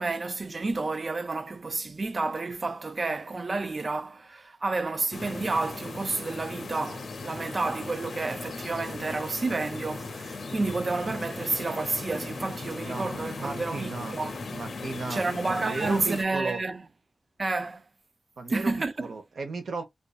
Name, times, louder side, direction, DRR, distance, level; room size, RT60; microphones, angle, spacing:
voice 1, 0.0-14.4 15.1-16.8 17.4-17.8 18.5-19.1, right 3 dB, 40° right, 0.3 m, -30 dB
sound 1, 5.1-16.2, left 3 dB, 70° left, 0.5 m, -38 dB
voice 2, 13.4-14.2 14.5-15.2 15.5-16.6 18.4-19.8, right 3 dB, 75° right, 0.7 m, -35 dB
2.6 x 2.2 x 2.2 m
wide cardioid pair, 100°, 0 cm